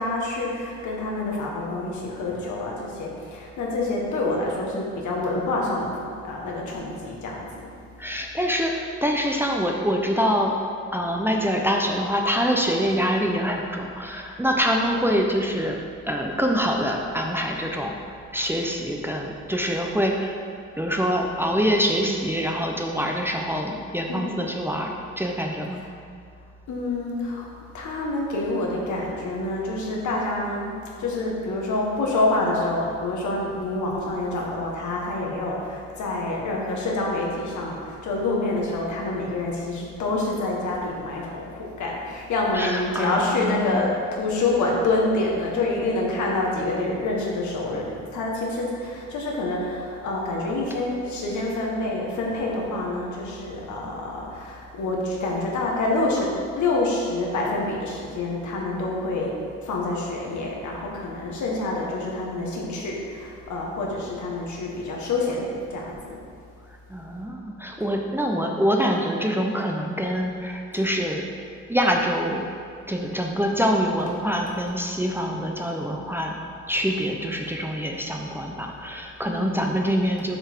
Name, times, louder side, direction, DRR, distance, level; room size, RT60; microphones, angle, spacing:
voice 1, 0.0-7.7 24.1-24.4 25.8-25.9 26.7-66.2 74.5-74.6 79.3-79.6, left 2 dB, 75° left, -2 dB, 1.6 m, -27 dB
voice 2, 8.0-10.6 10.9-15.8 16.1-17.9 18.3-20.4 20.8-25.8 42.5-43.8 50.7-50.8 66.9-71.2 71.7-72.5 72.9-76.4 76.7-80.4, equal, 5° right, 1 dB, 0.7 m, -25 dB
6.7 x 5.6 x 4.5 m, 2.3 s
cardioid pair, 90°, 30 cm